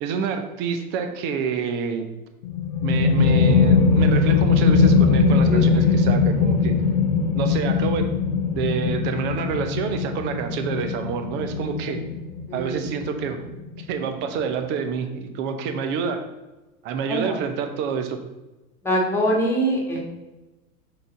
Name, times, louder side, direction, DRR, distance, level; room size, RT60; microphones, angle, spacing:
voice 1, 0.0-2.1 2.8-6.7 7.3-8.1 8.5-12.0 12.5-13.4 13.8-16.2 16.8-18.2, right 6 dB, 25° right, 6 dB, 0.6 m, -27 dB
sound 1, 2.4-13.8, left 5 dB, 25° left, 0.4 m, -20 dB
voice 2, 5.4-5.9 12.5-12.8 17.1-17.4 18.8-20.0, right 1 dB, 5° left, -2 dB, 1.5 m, -24 dB
6.8 x 3.7 x 3.7 m, 1.0 s
figure-of-eight pair, 95°, 46 cm